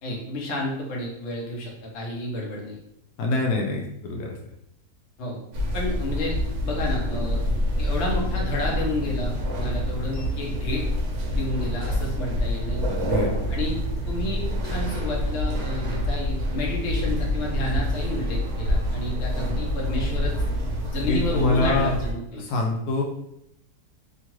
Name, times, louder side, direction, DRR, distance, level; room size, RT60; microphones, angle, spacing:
voice 1, 0.0-2.8 5.2-5.4 5.7-6.4 6.6-7.4 7.8-10.8 11.3-12.8 13.5-13.7 14.1-20.3 20.9-22.4, left 1 dB, 55° left, -2 dB, 0.9 m, -30 dB
voice 2, 3.2-4.4 12.9-13.3 21.1-22.0 22.3-23.0, left 3 dB, 80° left, 0 dB, 1.1 m, -25 dB
sound 1, 5.5-22.1, left 1 dB, 60° right, 0.8 m, -27 dB
2.9 x 2.4 x 2.9 m, 0.78 s
omnidirectional pair, 1.7 m